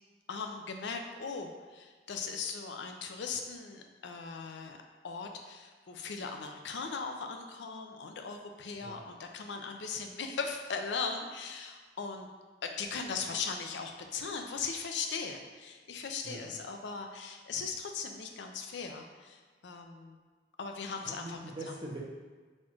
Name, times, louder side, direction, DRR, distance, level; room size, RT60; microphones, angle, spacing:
voice 1, 0.3-4.8 5.0-12.3 12.6-20.2 20.6-21.4 21.7-21.8, left 5 dB, 80° left, 4 dB, 0.5 m, -39 dB
voice 2, 21.0-22.0, right 1 dB, 25° right, -4 dB, 0.7 m, -43 dB
4.3 x 2.4 x 4.4 m, 1.4 s
head